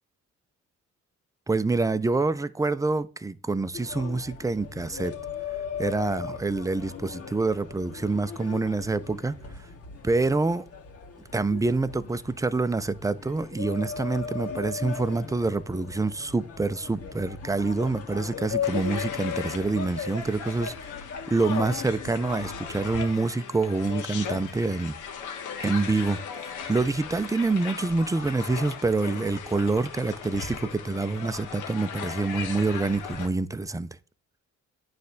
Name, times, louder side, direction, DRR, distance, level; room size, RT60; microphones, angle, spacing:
voice 1, 1.5-5.1 5.8-9.3 10.0-10.6 11.3-20.9 21.3-25.0 25.6-26.2 26.7-33.9, right 3 dB, 10° right, 0.6 m, -26 dB
sound 1, 3.7-23.1, left 6 dB, 50° left, 2.1 m, -37 dB
sound 2, 18.6-33.3, left 7 dB, 80° left, 1.4 m, -38 dB
9.2 x 3.4 x 6.5 m
cardioid pair, 90°, 30 cm